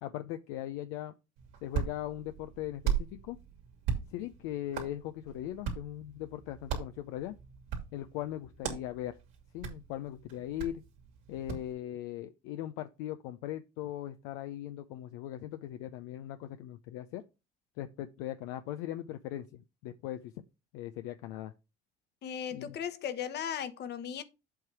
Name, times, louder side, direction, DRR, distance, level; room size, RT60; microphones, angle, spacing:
voice 1, 0.0-1.1 1.6-3.4 4.1-7.4 7.9-9.2 9.5-10.8 11.3-17.2 17.8-20.3 20.7-21.5 22.5-22.8, left 13 dB, 75° left, 0.5 m, -39 dB
Hands, 1.4-11.7, right 8 dB, 75° right, 2.6 m, -39 dB
voice 2, 22.2-24.2, left 8 dB, 55° left, 1.1 m, -37 dB
7.9 x 3.1 x 5.9 m
hypercardioid pair, 70°, 21 cm